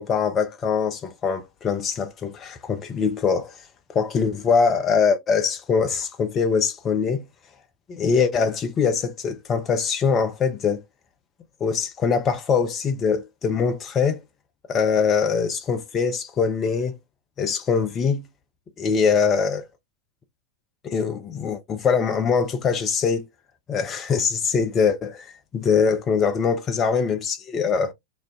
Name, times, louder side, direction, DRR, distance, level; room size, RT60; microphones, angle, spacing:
voice 1, 0.0-3.6 3.9-7.2 7.9-10.8 11.6-14.2 14.7-17.0 17.4-18.2 18.8-19.7 20.8-23.3 23.7-27.9, left 6 dB, 25° left, 0.4 m, -23 dB
2.3 x 2.1 x 2.5 m
figure-of-eight pair, 90°, 0 cm